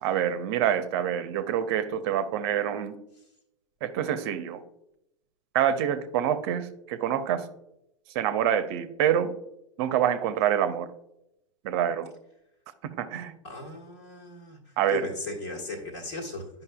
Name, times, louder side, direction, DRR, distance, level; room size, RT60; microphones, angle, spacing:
voice 1, 0.0-3.0 3.8-4.6 5.5-7.5 8.1-9.3 9.8-10.9 11.6-12.1 12.8-13.3 14.8-15.1, right 9 dB, 50° right, 11 dB, 0.6 m, -26 dB
voice 2, 13.4-14.6 14.9-16.5, left 2 dB, 60° left, -1 dB, 1.5 m, -36 dB
10.5 x 5.3 x 2.2 m, 0.83 s
figure-of-eight pair, 90°, 17 cm